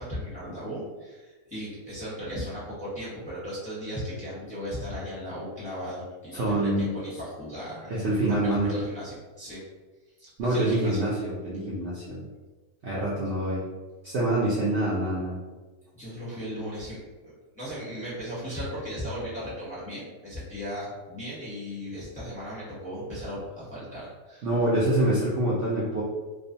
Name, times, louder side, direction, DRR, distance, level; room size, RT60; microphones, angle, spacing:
voice 1, 0.0-8.0 8.4-9.6 10.2-11.0 15.9-24.5, equal, 5° left, -10 dB, 0.8 m, -37 dB
voice 2, 6.3-6.9 7.9-8.7 10.4-12.2 12.8-13.6 14.0-15.3 24.4-26.0, right 1 dB, 65° right, -7 dB, 0.7 m, -25 dB
2.4 x 2.3 x 2.6 m, 1.3 s
omnidirectional pair, 1.6 m